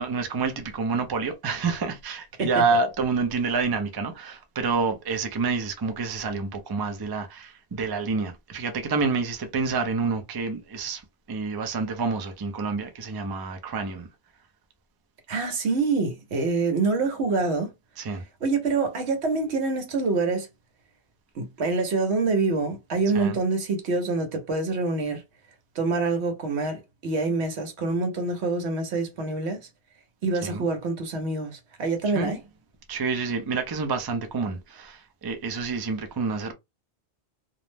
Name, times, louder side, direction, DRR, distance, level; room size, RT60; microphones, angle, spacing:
voice 1, 0.0-14.1 18.0-18.2 23.1-23.4 30.4-30.7 32.1-32.3 32.9-36.5, right 4 dB, 40° right, 0.3 m, -28 dB
voice 2, 15.3-17.7 18.4-20.5 21.3-25.2 25.7-29.7 30.2-32.4, right 3 dB, 70° right, 1.1 m, -26 dB
2.5 x 2.0 x 3.2 m
omnidirectional pair, 1.2 m